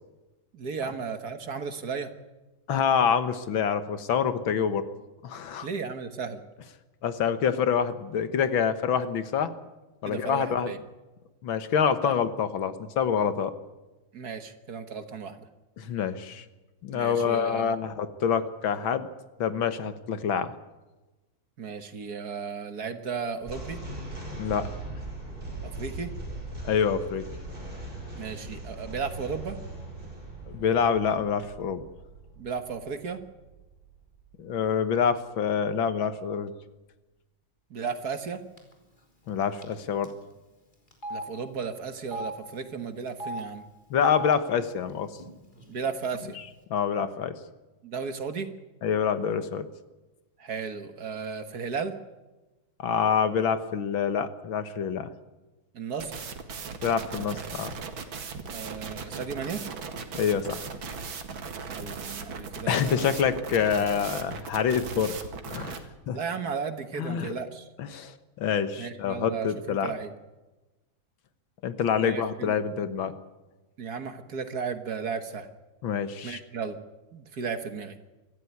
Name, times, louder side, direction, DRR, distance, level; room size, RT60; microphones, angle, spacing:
voice 1, 0.5-2.1 5.6-6.4 10.0-10.8 12.0-12.1 14.1-15.5 16.9-17.8 21.6-23.8 25.6-26.1 28.1-29.6 32.4-33.2 37.7-38.4 41.1-43.7 45.7-46.4 47.8-48.5 50.4-51.9 55.7-56.1 58.5-59.6 61.7-63.1 66.1-67.7 68.8-70.1 72.0-72.5 73.8-75.5 76.2-76.8 77.1-77.9, right 5 dB, 50° right, 9 dB, 1.8 m, -34 dB
voice 2, 2.7-4.9 5.2-5.7 7.0-9.5 10.0-10.7 11.4-13.5 15.8-16.5 16.8-19.1 19.4-20.5 24.3-24.7 26.6-27.2 30.5-31.8 34.4-36.5 39.3-40.1 43.9-45.1 46.7-47.3 48.8-49.7 52.8-55.1 56.8-57.7 60.1-60.7 62.7-65.1 65.5-66.2 67.0-67.3 67.8-69.9 71.6-73.1 75.8-76.4, left 7 dB, 70° left, 12 dB, 2.0 m, -26 dB
sound 1, 23.4-34.7, right 2 dB, 25° right, 6.9 m, -40 dB
Telephone, 38.1-38.3 38.6-38.7 39.6-39.8 40.0-40.1 40.9-41.2 42.0-42.3 43.1-43.4 44.0-44.3 45.2-45.3 45.5-46.2, equal, 20° left, 3.8 m, -36 dB
sound 2, 56.0-65.8, right 5 dB, 70° right, 2.7 m, -38 dB
25.0 x 14.5 x 9.5 m, 1.1 s
omnidirectional pair, 2.3 m